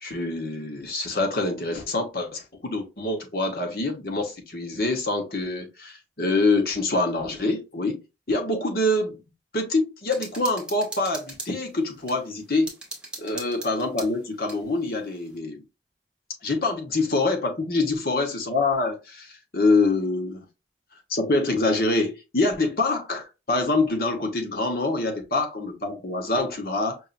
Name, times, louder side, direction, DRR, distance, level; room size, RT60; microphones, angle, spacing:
voice 1, 0.0-8.0 8.3-9.2 9.5-12.7 13.2-15.6 16.4-20.4 21.1-27.0, left 2 dB, 55° left, 1.1 m, -25 dB
sound 1, 10.1-12.2 12.7-14.6, right 2 dB, 5° right, 1.0 m, -39 dB
5.5 x 2.6 x 2.5 m
head